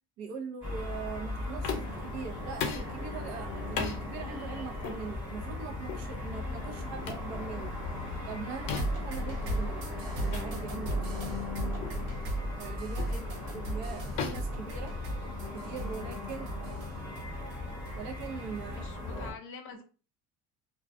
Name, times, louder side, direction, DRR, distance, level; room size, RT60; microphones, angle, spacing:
voice 1, 0.2-7.7 8.3-11.4 12.6-13.2 13.5-14.9 15.5-16.5 18.0-18.9, right 5 dB, 55° right, 3 dB, 0.6 m, -41 dB
sound 1, 0.6-19.3, left 2 dB, 5° right, 1.2 m, -38 dB
sound 2, 1.6-2.1 2.6-2.9 3.8-4.0 4.8-5.0 5.9-6.1 7.1-7.3 8.7-9.1 10.3-10.5 10.9-11.1 11.8-12.0 13.0-13.2 14.2-15.4, left 6 dB, 85° left, 0.7 m, -36 dB
sound 3, 8.7-18.2 18.6-18.7, right 1 dB, 90° right, 0.9 m, -37 dB
voice 2, 13.0-13.6 18.7-19.8, left 5 dB, 40° left, 4 dB, 0.4 m, -47 dB
2.2 x 2.2 x 2.5 m, 0.36 s
cardioid pair, 165°, 34 cm